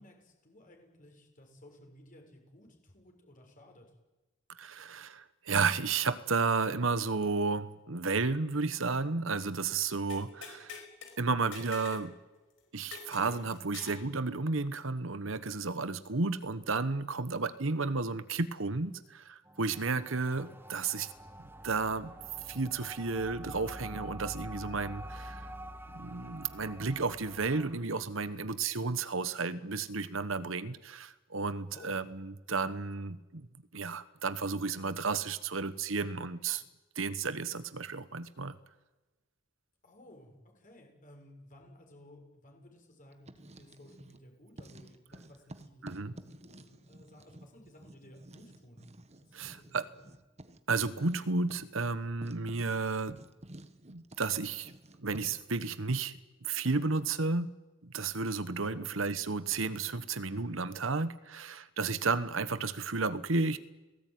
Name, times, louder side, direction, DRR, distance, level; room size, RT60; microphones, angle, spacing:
voice 1, 0.0-3.8 19.9-20.1 31.7-32.0 39.8-48.9 49.2-49.8 58.7-58.9, left 1 dB, 40° left, 3 dB, 6.6 m, -56 dB
voice 2, 4.6-10.8 11.2-12.1 12.7-21.1 21.6-22.1 22.5-25.5 25.9-33.5 33.7-36.6 36.9-38.6 45.8-46.1 49.3-49.9 50.7-53.2 53.9-54.7 55.0-57.5 57.8-63.6, right 4 dB, 70° right, 13 dB, 1.2 m, -32 dB
sound 1, 10.1-11.1 11.5-12.1 12.3-12.4 12.9-14.0, left 6 dB, 65° left, 5.2 m, -46 dB
sound 2, 19.4-27.8, right 1 dB, 10° right, 1.6 m, -46 dB
Writing, 43.1-44.2 44.5-55.5, right 1 dB, 35° right, 1.5 m, -52 dB
30.0 x 18.5 x 9.4 m, 1.1 s
head